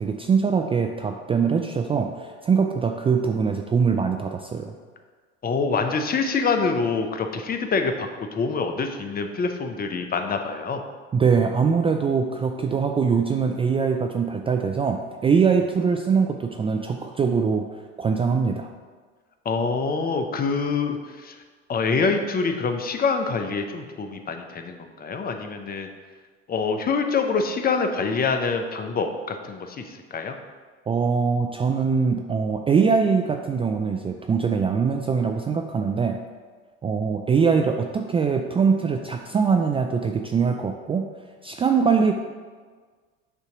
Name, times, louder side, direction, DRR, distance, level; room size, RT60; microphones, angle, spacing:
voice 1, 0.0-4.8 11.1-17.7 18.0-18.7 30.9-36.2 36.8-41.0 41.4-42.1, right 5 dB, 20° right, 4 dB, 0.3 m, -22 dB
voice 2, 5.4-10.8 19.4-21.4 21.7-25.9 26.5-30.4, left 4 dB, 30° left, 6 dB, 0.7 m, -25 dB
6.8 x 2.9 x 5.8 m, 1.5 s
hypercardioid pair, 85°, 32 cm